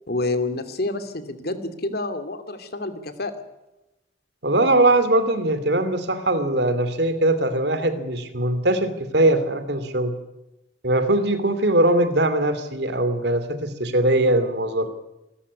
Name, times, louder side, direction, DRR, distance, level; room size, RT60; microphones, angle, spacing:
voice 1, 0.1-3.3, left 2 dB, 60° left, 9 dB, 2.6 m, -28 dB
voice 2, 4.4-10.1 10.8-14.9, right 1 dB, 65° right, 11 dB, 2.7 m, -21 dB
26.5 x 14.0 x 9.7 m, 0.97 s
head